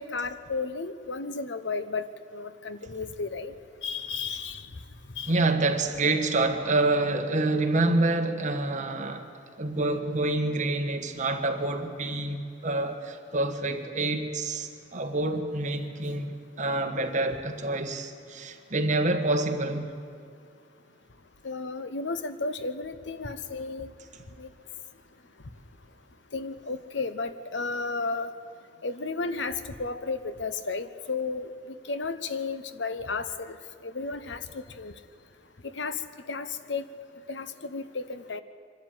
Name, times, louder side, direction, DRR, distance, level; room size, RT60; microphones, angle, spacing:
voice 1, 0.0-2.1 2.3-3.5 3.8-4.6 5.2-5.3 21.4-23.9 24.4-24.5 26.3-28.3 28.8-31.5 31.9-33.6 33.8-34.4 34.8-34.9 35.8-36.0 36.3-36.8 37.3-38.4, left 4 dB, 85° left, 1.0 m, -33 dB
voice 2, 5.3-9.3 9.5-19.9, right 2 dB, 45° right, 1.6 m, -27 dB
24.5 x 12.5 x 9.4 m
head